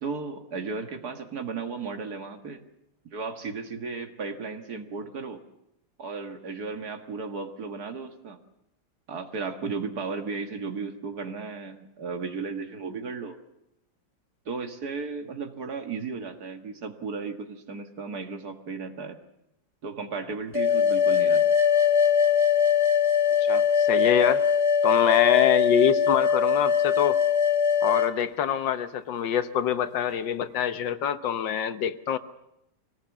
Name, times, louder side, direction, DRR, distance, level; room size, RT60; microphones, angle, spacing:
voice 1, 0.0-2.6 3.0-5.4 6.0-8.4 9.1-13.4 14.5-19.2 19.8-21.4, right 4 dB, 55° right, 6 dB, 2.2 m, -35 dB
sound 1, 20.5-28.1, left 7 dB, 20° left, 1.1 m, -21 dB
voice 2, 23.4-24.5 24.8-27.2 27.8-32.2, left 9 dB, 80° left, 11 dB, 1.7 m, -25 dB
24.0 x 18.0 x 7.3 m, 0.85 s
omnidirectional pair, 2.0 m